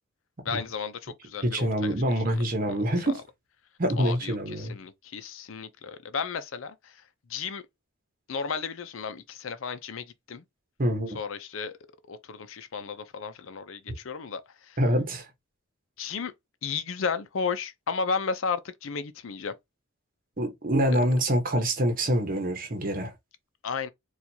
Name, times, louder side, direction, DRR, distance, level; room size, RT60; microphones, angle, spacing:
voice 1, 0.4-1.9 2.7-2.8 3.1-3.2 4.0-7.0 7.3-7.6 8.3-10.4 11.1-11.8 12.1-14.8 16.0-16.3 16.6-19.5 20.9-21.0 23.6-23.9, left 5 dB, 80° left, 0.5 m, -33 dB
voice 2, 1.4-3.2 3.8-4.8 10.8-11.2 14.8-15.3 20.4-23.1, equal, 45° right, 0.9 m, -25 dB
4.4 x 2.4 x 2.7 m
head